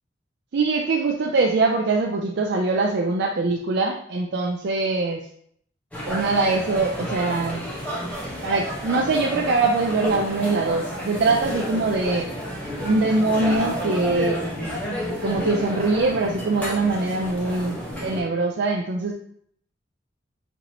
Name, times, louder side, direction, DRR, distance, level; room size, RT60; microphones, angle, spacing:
voice 1, 0.5-5.2 6.1-7.7 8.4-12.3 12.8-14.4 15.1-19.1, right 3 dB, 65° right, 0 dB, 0.4 m, -23 dB
sound 1, 5.9-18.2, equal, 10° left, 1.2 m, -31 dB
4.6 x 3.8 x 2.9 m, 0.66 s
head